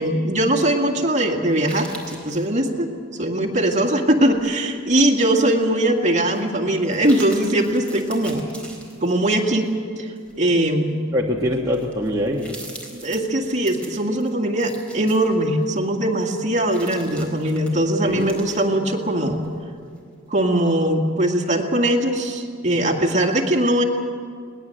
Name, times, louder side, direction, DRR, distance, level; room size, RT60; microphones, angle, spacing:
voice 1, 0.0-8.5 9.0-9.7 10.0-11.0 11.6-11.7 12.9-19.4 20.3-23.8, right 1 dB, 40° right, 2 dB, 2.0 m, -21 dB
sound 1, 1.5-2.5 3.7-4.7 5.2-5.3 6.3-6.4 6.8-9.7 10.2-10.4 11.1-11.2 11.5-15.8 16.2-19.5 19.9-20.0, right 1 dB, 5° left, 4.2 m, -42 dB
voice 2, 11.1-12.8 18.0-18.4, equal, 20° right, -3 dB, 1.3 m, -24 dB
21.0 x 19.0 x 7.8 m, 2.2 s
head